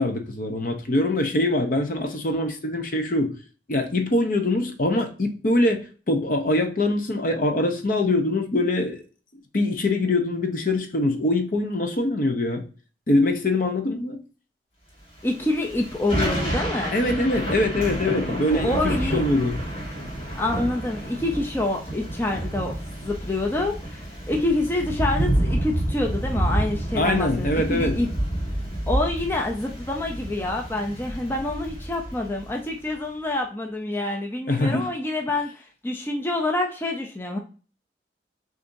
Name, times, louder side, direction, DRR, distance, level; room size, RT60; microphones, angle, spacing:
voice 1, 0.0-3.3 3.7-9.0 9.5-12.6 13.1-14.2 16.9-19.6 27.0-27.9 34.5-34.9, left 2 dB, 50° left, 5 dB, 0.7 m, -23 dB
Thunder / Rain, 15.2-32.7, right 1 dB, 35° left, 1.8 m, -29 dB
voice 2, 15.2-17.0 18.5-19.2 20.3-28.1 28.9-37.4, left 2 dB, 15° left, 1 dB, 0.5 m, -27 dB
6.6 x 2.6 x 2.6 m, 0.37 s
head